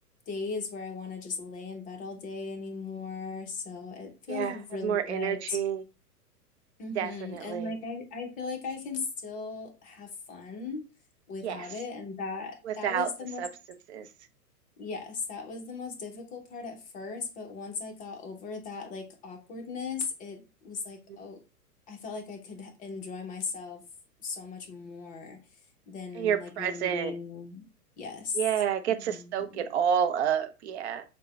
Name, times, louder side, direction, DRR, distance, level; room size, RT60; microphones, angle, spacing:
voice 1, 0.3-5.6 6.8-10.8 11.3-13.4 14.8-21.4 21.9-23.8 24.2-25.4 25.9-27.7 28.0-28.4 28.9-29.6, left 4 dB, 15° left, 0.7 m, -38 dB
voice 2, 4.3-5.8 7.0-7.7 11.4-11.7 12.6-13.1 13.4-13.5 13.9-14.1 21.1-21.2 26.1-27.1 28.3-31.0, right 8 dB, 45° right, 0.6 m, -29 dB
6.4 x 2.2 x 3.1 m
figure-of-eight pair, 110°, 47 cm